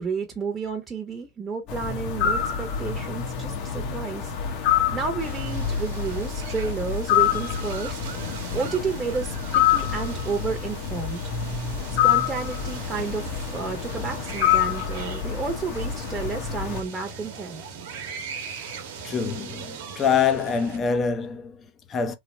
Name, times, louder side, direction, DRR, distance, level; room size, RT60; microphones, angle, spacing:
voice 1, 0.0-8.0 8.5-11.2 11.9-17.6, right 5 dB, 20° right, 0.8 m, -31 dB
sound 1, 1.7-16.8, left 9 dB, 50° left, 1.0 m, -27 dB
sound 2, 5.2-20.8, right 6 dB, 70° right, 1.0 m, -40 dB
voice 2, 19.0-22.1, left 6 dB, 25° left, 0.6 m, -25 dB
3.2 x 2.0 x 4.2 m
supercardioid pair, 125°, 0 cm